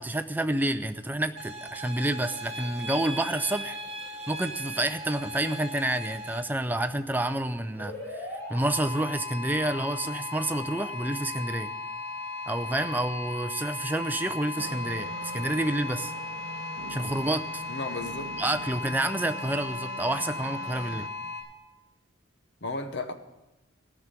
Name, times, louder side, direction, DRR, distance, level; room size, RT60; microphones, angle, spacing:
voice 1, 0.0-3.8 4.3-11.7 12.5-16.1 16.9-17.6 18.4-21.1, right 1 dB, 10° right, 0.5 m, -29 dB
sound 1, 1.4-6.4, right 1 dB, 30° right, 1.1 m, -38 dB
sound 2, 7.7-21.4, left 3 dB, 15° left, 5.6 m, -37 dB
sound 3, 14.6-21.1, right 3 dB, 75° right, 0.6 m, -43 dB
voice 2, 17.7-18.3 22.6-23.1, left 3 dB, 55° left, 0.9 m, -34 dB
14.5 x 6.0 x 8.2 m
head